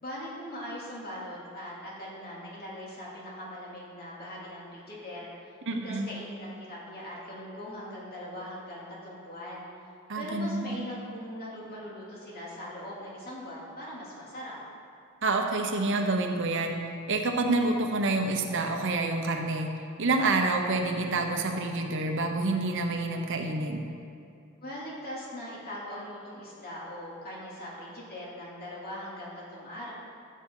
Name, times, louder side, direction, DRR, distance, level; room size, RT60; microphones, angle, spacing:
voice 1, 0.0-5.3 5.8-9.7 10.1-14.6 24.6-29.9, left 1 dB, 45° left, -6 dB, 2.7 m, -40 dB
voice 2, 5.7-6.1 10.1-10.9 15.2-19.7 20.0-23.9, right 2 dB, 60° right, 3 dB, 0.9 m, -28 dB
13.5 x 7.4 x 3.8 m, 2.6 s
head